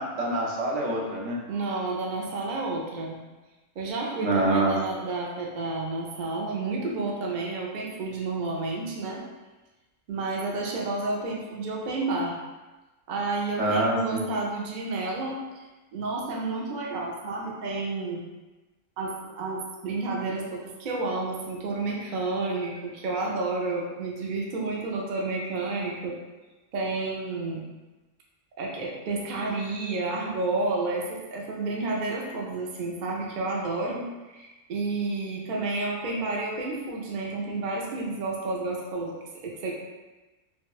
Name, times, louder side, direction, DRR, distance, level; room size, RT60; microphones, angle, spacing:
voice 1, 0.0-1.4 4.2-4.7 13.6-14.2, right 2 dB, 70° right, -2 dB, 1.0 m, -25 dB
voice 2, 1.5-3.2 3.8-9.2 10.1-12.3 13.1-15.6 15.9-18.3 19.0-26.2 26.7-27.6 28.6-39.7, right 3 dB, 55° right, -2 dB, 0.5 m, -30 dB
4.4 x 2.1 x 2.3 m, 1.2 s
omnidirectional pair, 1.3 m